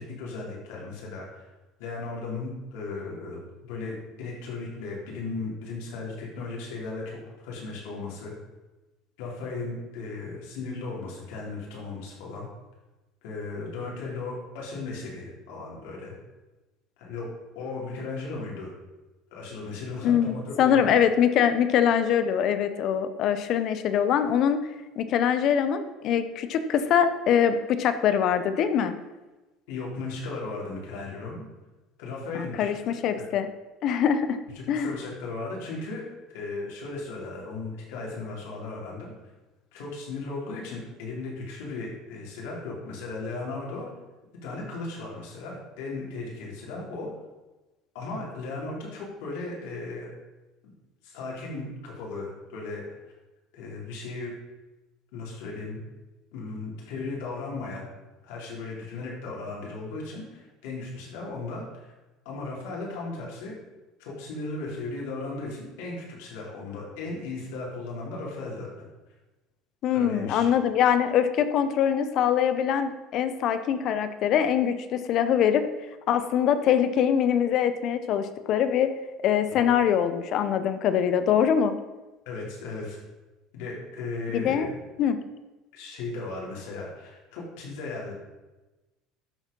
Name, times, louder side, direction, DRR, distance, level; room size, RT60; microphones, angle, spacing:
voice 1, 0.0-1.5 1.8-8.3 9.2-12.5 13.2-16.2 17.0-17.3 17.6-18.7 19.3-20.8 29.7-31.4 32.0-32.7 34.6-39.1 39.7-43.9 44.4-47.1 47.9-50.1 50.6-50.7 51.0-52.8 53.5-54.3 55.1-55.8 56.3-57.9 58.2-61.9 62.3-63.5 64.0-68.7 69.9-70.5 79.5-79.6 82.3-83.0 83.5-84.7 85.7-88.1, left 3 dB, 80° left, -3 dB, 3.6 m, -36 dB
voice 2, 20.0-24.6 25.0-28.9 32.3-33.5 33.8-34.4 34.7-34.9 69.8-75.6 76.1-78.9 79.2-81.8 84.3-84.7 85.0-85.2, left 8 dB, 40° left, 11 dB, 0.7 m, -23 dB
12.0 x 5.0 x 5.4 m, 1.1 s
cardioid pair, 175°, 0 cm